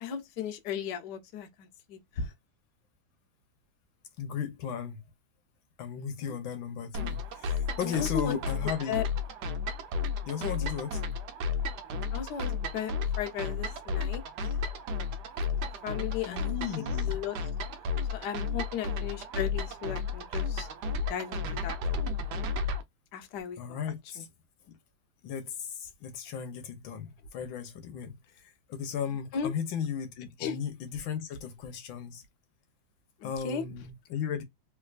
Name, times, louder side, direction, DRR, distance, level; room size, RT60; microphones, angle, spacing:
voice 1, 0.0-2.3 6.2-6.3 7.8-8.4 8.9-9.0 10.6-10.7 12.1-14.2 15.8-16.5 17.1-17.4 18.1-20.7 21.1-21.8 23.1-23.6 24.2-24.3 29.3-29.5 30.4-30.6 33.2-33.6, left 8 dB, 65° left, 1.3 m, -35 dB
voice 2, 4.2-5.0 5.8-9.0 10.3-11.0 16.2-17.2 23.6-24.3 24.7-24.8 25.2-32.2 33.2-34.4, left 8 dB, 80° left, 1.5 m, -36 dB
sound 1, 6.9-22.8, left 4 dB, 65° right, 1.1 m, -33 dB
3.5 x 3.2 x 2.3 m
omnidirectional pair, 2.2 m